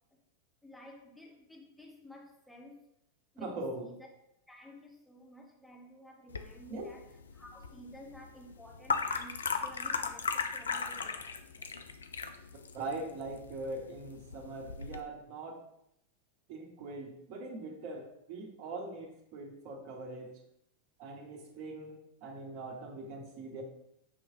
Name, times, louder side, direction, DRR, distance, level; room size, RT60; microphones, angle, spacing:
voice 1, 0.6-2.8 3.3-3.9 4.5-7.1 7.3-11.8, left 1 dB, 5° left, 0 dB, 0.6 m, -53 dB
voice 2, 3.4-3.9 6.7-6.9 12.7-15.7 16.5-20.4 21.0-23.6, right 2 dB, 45° right, 2 dB, 0.9 m, -42 dB
sound 1, 6.3-15.0, left 5 dB, 70° left, 0.3 m, -37 dB
5.7 x 3.1 x 2.7 m, 0.77 s
figure-of-eight pair, 90°, 0 cm